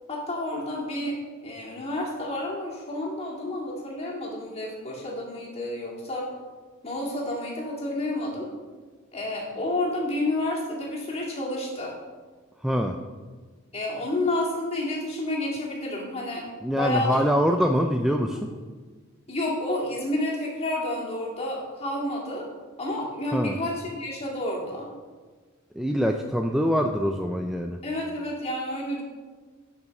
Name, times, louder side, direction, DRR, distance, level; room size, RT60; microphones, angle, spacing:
voice 1, 0.1-6.3 6.8-8.5 9.1-11.9 13.7-17.2 18.1-18.3 19.3-22.4 22.8-24.9 27.8-29.0, left 1 dB, 30° left, -3 dB, 2.2 m, -30 dB
voice 2, 12.6-13.0 16.6-18.5 23.3-23.6 25.7-27.8, equal, ahead, 3 dB, 0.3 m, -24 dB
7.3 x 6.3 x 6.4 m, 1.4 s
head